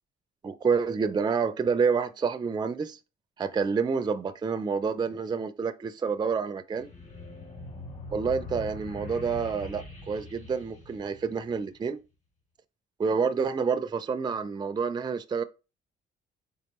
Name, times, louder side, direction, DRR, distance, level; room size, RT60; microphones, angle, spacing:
voice 1, 0.4-3.0 3.4-6.9 8.1-12.0 13.0-15.4, right 5 dB, 20° right, 0.4 m, -28 dB
sound 1, 6.8-11.7, left 2 dB, 35° left, 2.0 m, -43 dB
4.5 x 3.5 x 2.9 m
cardioid pair, 90°, 20 cm